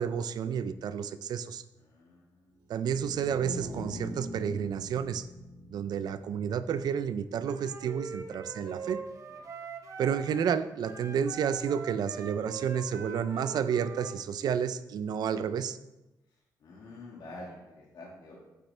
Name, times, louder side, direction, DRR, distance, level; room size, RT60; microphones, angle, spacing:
voice 1, 0.0-1.6 2.7-5.3 5.7-9.0 10.0-15.8, right 7 dB, 70° right, 12 dB, 0.4 m, -31 dB
voice 2, 1.7-2.6 9.3-9.5 16.6-18.4, left 2 dB, 80° left, -4 dB, 1.8 m, -48 dB
sound 1, 2.8-9.2, equal, 85° right, 1.6 m, -45 dB
Wind instrument woodwind instrument, 7.4-10.5 10.8-14.2, right 5 dB, 50° right, 0.9 m, -43 dB
8.8 x 7.8 x 3.3 m, 1.0 s
wide cardioid pair, 170°, 7 cm